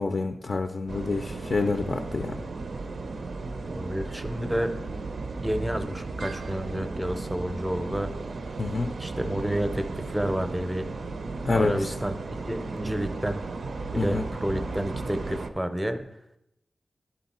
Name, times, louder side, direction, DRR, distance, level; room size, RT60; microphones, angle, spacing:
voice 1, 0.0-2.4 8.6-8.9 11.4-11.9 14.0-14.2, left 3 dB, 50° left, 5 dB, 0.4 m, -27 dB
sound 1, 0.9-15.5, right 3 dB, 75° right, 0.5 m, -35 dB
voice 2, 3.6-4.7 5.4-8.1 9.0-10.9 11.6-12.2 12.5-13.4 13.9-16.0, right 1 dB, 10° right, 8 dB, 0.6 m, -30 dB
11.0 x 4.0 x 4.2 m, 0.84 s
wide cardioid pair, 125°, 0 cm